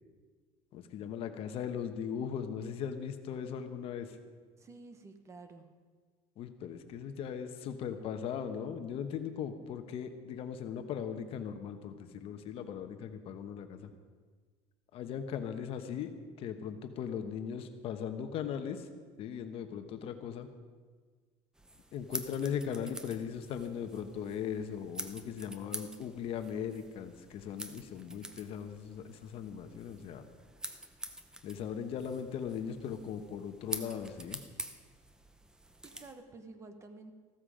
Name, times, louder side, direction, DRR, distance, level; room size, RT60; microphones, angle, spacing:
voice 1, 0.7-4.2 6.4-13.9 14.9-16.1 16.4-18.9 19.2-20.5 21.9-30.3 31.4-34.4, left 8 dB, 45° left, 7 dB, 1.1 m, -38 dB
voice 2, 4.6-5.7 35.8-37.1, right 3 dB, 20° right, 8 dB, 1.1 m, -51 dB
sound 1, 21.6-36.1, right 1 dB, 5° right, 0.6 m, -47 dB
15.0 x 13.0 x 5.0 m, 1.5 s
cardioid pair, 165°, 13 cm